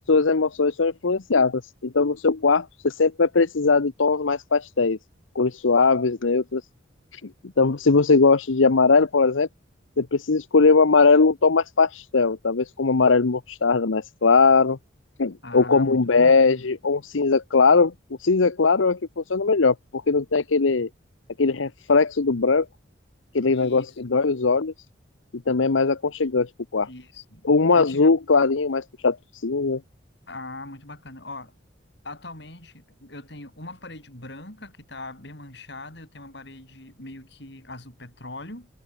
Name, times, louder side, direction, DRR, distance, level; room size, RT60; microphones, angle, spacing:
voice 1, 0.1-5.0 5.4-6.6 7.1-7.3 7.6-9.5 10.0-14.8 15.2-17.9 18.2-19.7 20.1-20.9 21.4-22.7 23.3-24.7 25.5-26.9 27.4-29.8, left 4 dB, 90° left, 0.8 m, -20 dB
voice 2, 15.4-16.7 23.5-24.0 26.8-27.4 27.7-28.2 30.3-31.5 32.0-38.7, left 2 dB, 60° left, 6.2 m, -40 dB
head